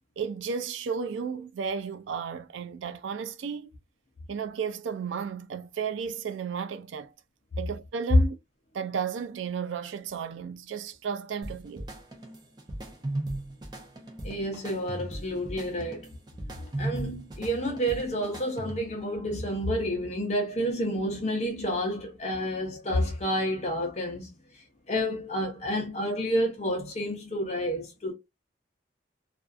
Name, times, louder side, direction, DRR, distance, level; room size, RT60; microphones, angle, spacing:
voice 1, 0.2-3.7 4.3-7.1 7.6-8.4 8.7-11.9, right 6 dB, 80° right, 0.4 m, -33 dB
sound 1, 11.4-19.0, right 1 dB, 20° right, 0.5 m, -37 dB
voice 2, 14.2-16.1 16.6-24.3 24.9-28.1, equal, 35° left, 0.6 m, -30 dB
2.5 x 2.4 x 2.3 m
head